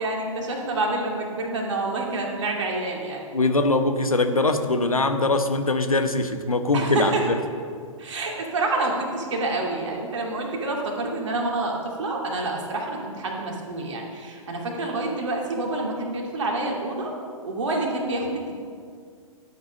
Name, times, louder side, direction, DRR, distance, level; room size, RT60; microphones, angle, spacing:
voice 1, 0.0-3.2 6.7-7.2 8.0-17.1 17.4-18.5, right 2 dB, 55° right, -1 dB, 2.6 m, -28 dB
voice 2, 3.3-7.4, left 2 dB, 80° left, 8 dB, 1.0 m, -22 dB
12.5 x 8.5 x 5.3 m, 2.2 s
figure-of-eight pair, 115°, 18 cm